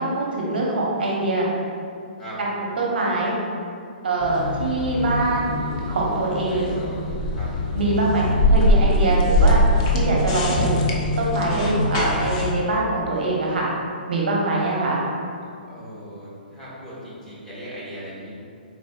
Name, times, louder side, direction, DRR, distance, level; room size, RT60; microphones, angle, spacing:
voice 1, 0.0-1.5 2.4-2.5 2.8-3.3 4.0-5.5 5.9-6.7 7.7-9.6 9.9-10.7 11.2-13.7 14.1-15.0, right 2 dB, 70° right, -3 dB, 1.0 m, -23 dB
sound 1, 4.2-12.5, left 1 dB, 35° left, 0.6 m, -22 dB
voice 2, 15.7-18.4, equal, 10° left, -9 dB, 1.2 m, -38 dB
4.1 x 4.0 x 2.4 m, 2.4 s
hypercardioid pair, 145°, 5 cm